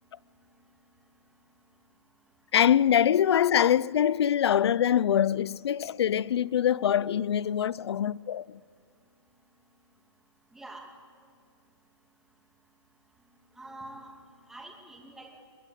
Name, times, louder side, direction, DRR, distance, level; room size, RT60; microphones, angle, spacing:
voice 1, 2.5-8.6, left 9 dB, 60° left, 0.5 m, -24 dB
voice 2, 10.5-10.9 13.6-14.1 14.5-15.4, right 2 dB, 5° right, 2.3 m, -45 dB
22.5 x 21.0 x 8.3 m
hypercardioid pair, 150°, 15 cm